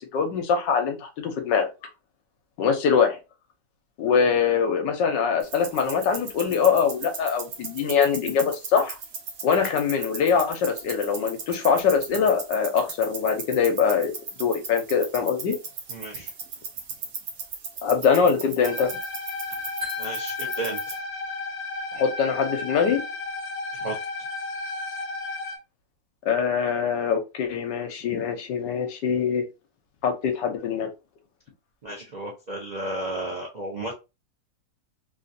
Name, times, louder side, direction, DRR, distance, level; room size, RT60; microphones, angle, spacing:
voice 1, 0.1-1.7 2.6-3.2 4.0-9.0 9.4-14.1 14.4-15.6 17.8-18.9 21.9-23.0 26.2-29.4 30.0-30.9, left 6 dB, 80° left, 5 dB, 1.4 m, -23 dB
sound 1, 5.4-21.0, right 5 dB, 60° right, 1.1 m, -38 dB
voice 2, 15.9-16.3 20.0-20.9 23.8-23.9 31.8-33.9, right 1 dB, 80° right, -2 dB, 0.4 m, -33 dB
sound 2, 18.6-25.6, left 2 dB, 55° left, 0.8 m, -33 dB
Wind chime, 19.8-22.9, left 9 dB, 35° right, 0.8 m, -39 dB
3.4 x 2.5 x 2.6 m, 0.26 s
omnidirectional pair, 2.0 m